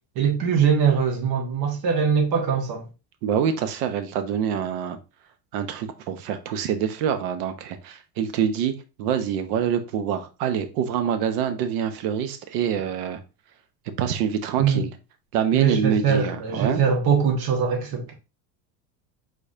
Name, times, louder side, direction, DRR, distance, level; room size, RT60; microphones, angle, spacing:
voice 1, 0.1-2.8 14.6-14.9 15.5-18.1, right 6 dB, 45° right, 1.4 m, -22 dB
voice 2, 3.2-5.0 5.5-8.7 9.0-13.2 14.0-14.9 15.3-16.8, right 8 dB, 65° right, 1.0 m, -25 dB
4.7 x 4.0 x 2.7 m
hypercardioid pair, 90°, 49 cm